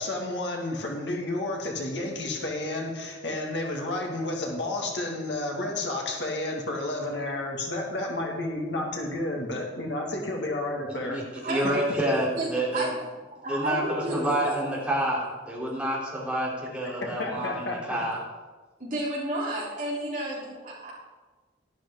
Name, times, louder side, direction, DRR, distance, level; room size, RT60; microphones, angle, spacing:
voice 1, 0.0-11.2 11.6-11.7 17.2-18.0, left 2 dB, 65° left, 0 dB, 2.1 m, -31 dB
voice 2, 10.9-12.9 13.5-18.2, right 1 dB, 5° right, -6 dB, 3.3 m, -28 dB
voice 3, 11.4-12.9 13.4-14.6 18.8-20.9, right 1 dB, 45° right, -5 dB, 3.6 m, -32 dB
11.5 x 11.5 x 3.8 m, 1.3 s
head